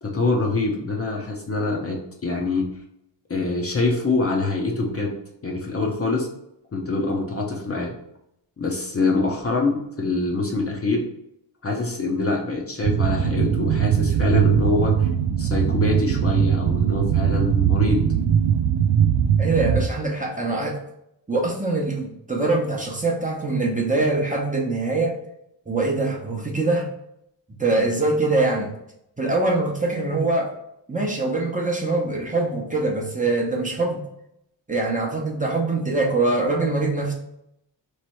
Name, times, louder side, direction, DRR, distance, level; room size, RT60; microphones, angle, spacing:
voice 1, 0.0-2.7 3.3-5.1 5.4-6.3 6.7-7.9 8.6-11.0 11.6-15.1 15.4-18.1, left 3 dB, 30° left, 0 dB, 0.7 m, -24 dB
sound 1, 12.8-19.9, right 8 dB, 55° right, 0.5 m, -20 dB
voice 2, 19.4-20.8 21.3-25.2 25.7-26.9 27.6-28.7 29.2-30.5 30.9-34.0 34.7-37.1, right 2 dB, 20° right, -1 dB, 0.7 m, -23 dB
3.3 x 3.2 x 4.4 m, 0.79 s
wide cardioid pair, 130°, 44 cm